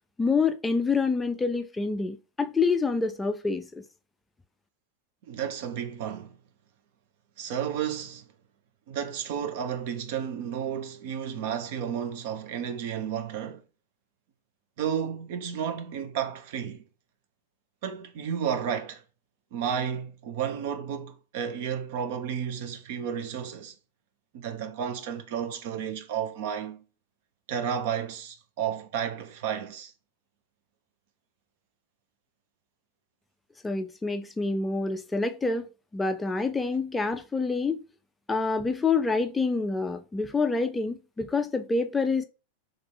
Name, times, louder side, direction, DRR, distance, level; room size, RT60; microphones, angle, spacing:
voice 1, 0.2-3.7 33.6-37.8 38.3-42.2, left 4 dB, 10° left, 0.4 m, -27 dB
voice 2, 5.2-6.4 7.4-8.3 8.9-13.6 14.8-16.8 17.8-19.0 19.5-23.7 24.3-26.8 27.5-29.9, right 8 dB, 50° right, 0.7 m, -32 dB
3.3 x 3.2 x 3.7 m
figure-of-eight pair, 90°, 0 cm